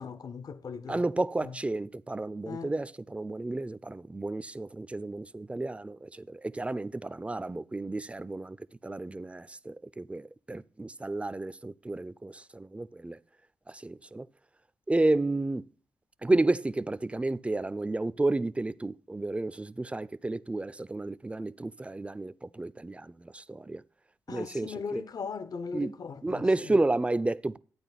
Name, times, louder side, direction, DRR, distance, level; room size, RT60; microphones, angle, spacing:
voice 1, 0.0-1.0 1.4-1.5 2.5-2.7 24.3-26.8, left 5 dB, 60° left, 0.8 m, -39 dB
voice 2, 0.9-13.2 13.7-14.3 14.9-15.7 16.2-23.8 24.3-25.0 25.7-25.9 26.2-27.6, right 2 dB, 15° right, 0.5 m, -31 dB
12.0 x 8.6 x 4.1 m
cardioid pair, 60°, 7 cm